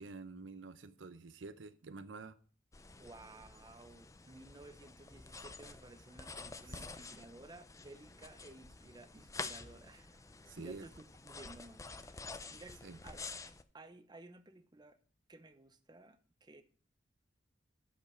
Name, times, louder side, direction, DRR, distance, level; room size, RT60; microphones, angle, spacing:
voice 1, 0.0-2.4 6.7-6.8 10.5-10.8 12.8-13.0, right 3 dB, 75° right, 12 dB, 0.7 m, -48 dB
sound 1, 2.7-13.6, left 3 dB, 15° left, 0.5 m, -49 dB
voice 2, 3.0-10.2 10.6-13.3 13.7-15.0 15.3-16.6, right 2 dB, 25° right, 9 dB, 0.8 m, -56 dB
11.5 x 5.3 x 5.7 m, 0.43 s
head